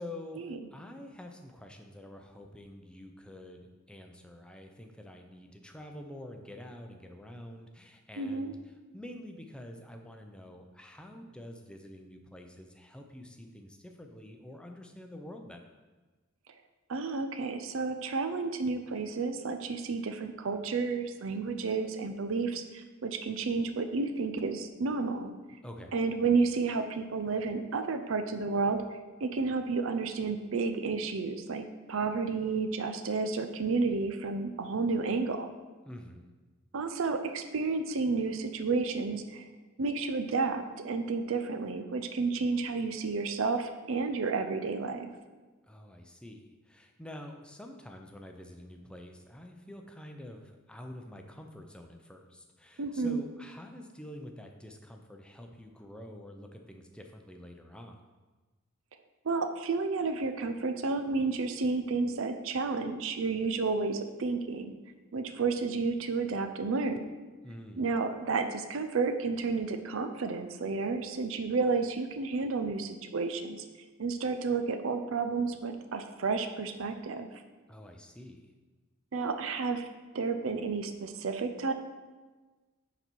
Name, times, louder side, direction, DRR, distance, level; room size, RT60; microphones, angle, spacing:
voice 1, 0.0-0.4 0.7-15.8 25.6-26.0 35.8-36.3 45.7-58.0 67.4-67.9 77.7-78.5, left 1 dB, 5° left, 3 dB, 0.6 m, -47 dB
voice 2, 8.2-8.5 16.9-25.3 25.9-35.5 36.7-39.4 39.8-45.1 52.8-53.2 59.2-64.8 65.1-67.0 67.8-73.7 74.0-77.3 79.1-79.9 80.1-81.7, right 4 dB, 70° right, 8 dB, 0.5 m, -31 dB
9.8 x 4.0 x 4.6 m, 1.3 s
head